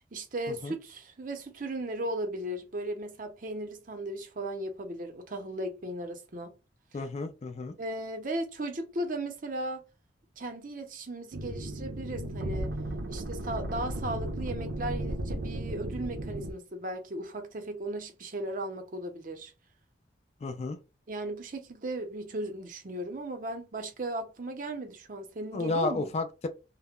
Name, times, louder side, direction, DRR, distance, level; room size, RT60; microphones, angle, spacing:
voice 1, 0.1-6.5 7.8-9.8 10.4-12.7 13.1-19.5 21.1-26.1, right 1 dB, 50° right, 0.6 m, -36 dB
voice 2, 6.9-7.8 20.4-20.8 25.5-26.5, left 2 dB, 35° left, 0.3 m, -32 dB
sound 1, 11.3-16.5, right 1 dB, 85° right, 0.5 m, -35 dB
2.1 x 2.0 x 3.5 m
head